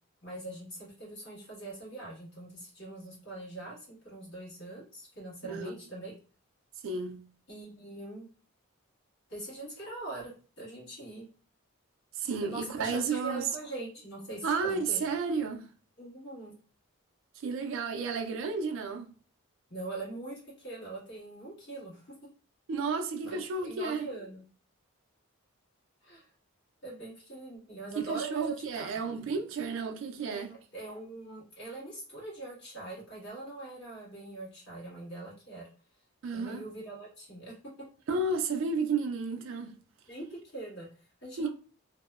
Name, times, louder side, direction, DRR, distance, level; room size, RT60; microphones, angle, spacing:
voice 1, 0.2-6.1 7.5-8.3 9.3-11.2 12.4-15.0 16.0-16.5 19.7-22.1 23.2-24.4 26.0-26.3 26.8-28.9 30.3-35.7 36.3-37.6 40.1-41.5, right 2 dB, 55° left, 1.4 m, -42 dB
voice 2, 5.4-5.7 6.8-7.3 12.2-13.4 14.4-15.7 17.4-19.1 22.7-24.1 28.0-30.5 36.2-36.6 38.1-39.8 41.4-41.5, right 4 dB, 60° right, 0.3 m, -32 dB
2.8 x 2.0 x 2.2 m
head